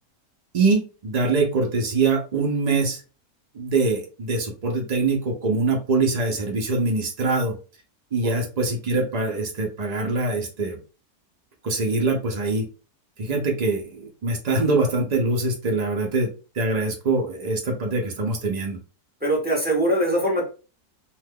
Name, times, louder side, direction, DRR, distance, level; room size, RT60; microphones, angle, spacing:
voice 1, 0.5-3.0 3.5-7.6 8.1-10.8 11.6-12.6 13.2-16.3 16.5-18.8, right 3 dB, 75° right, 2 dB, 0.3 m, -23 dB
voice 2, 19.2-20.4, right 1 dB, 10° right, -3 dB, 0.5 m, -22 dB
2.5 x 2.3 x 3.4 m, 0.34 s
omnidirectional pair, 1.7 m